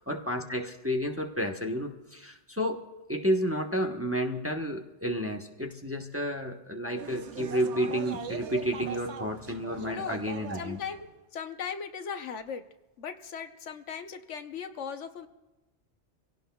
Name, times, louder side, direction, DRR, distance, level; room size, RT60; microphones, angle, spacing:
voice 1, 0.1-2.8 3.1-10.8, equal, 15° right, 1 dB, 0.9 m, -31 dB
sound 1, 7.0-11.1, right 7 dB, 75° right, 1.1 m, -40 dB
voice 2, 9.9-10.2 10.6-12.7 13.0-15.3, left 7 dB, 85° left, 8 dB, 1.2 m, -38 dB
25.5 x 17.0 x 2.3 m, 1.1 s
omnidirectional pair, 1.2 m